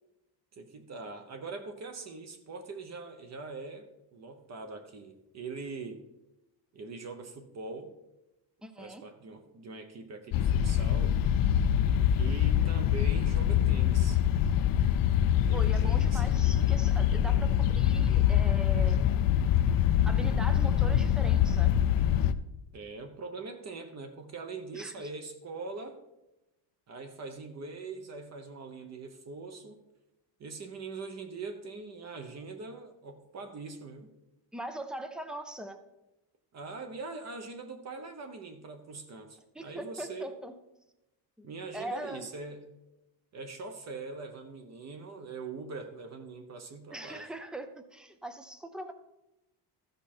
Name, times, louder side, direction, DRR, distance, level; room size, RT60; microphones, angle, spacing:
voice 1, 0.5-6.0 6.7-7.9 8.8-11.2 12.1-14.2 15.4-16.2 22.7-26.0 26.9-29.8 30.4-34.1 36.5-40.3 41.4-42.8 43.3-47.3, right 4 dB, 35° right, 7 dB, 0.8 m, -42 dB
voice 2, 8.6-9.0 15.5-19.0 20.1-21.7 24.7-25.1 34.5-35.8 39.5-40.6 41.4-41.5 41.7-42.3 46.9-48.9, right 1 dB, ahead, 8 dB, 0.4 m, -41 dB
sound 1, 10.3-22.3, left 10 dB, 55° left, 0.5 m, -25 dB
14.0 x 5.4 x 4.3 m, 0.94 s
cardioid pair, 170°, 44 cm